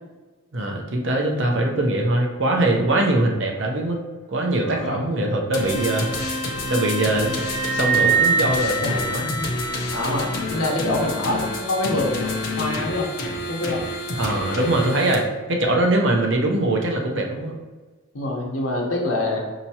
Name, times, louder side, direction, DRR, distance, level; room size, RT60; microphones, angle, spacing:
voice 1, 0.5-4.0 4.3-6.1 6.7-7.4 7.7-9.3 14.2-17.5, right 1 dB, 60° right, 1 dB, 0.7 m, -22 dB
voice 2, 4.6-5.4 8.8-9.5 9.9-13.1 13.5-13.8 18.1-19.4, left 2 dB, 80° left, -1 dB, 0.9 m, -26 dB
sound 1, 5.5-15.1, left 2 dB, 50° left, 0.6 m, -28 dB
sound 2, 7.4-10.1, right 5 dB, 15° right, 0.4 m, -23 dB
5.6 x 2.9 x 2.8 m, 1.3 s
head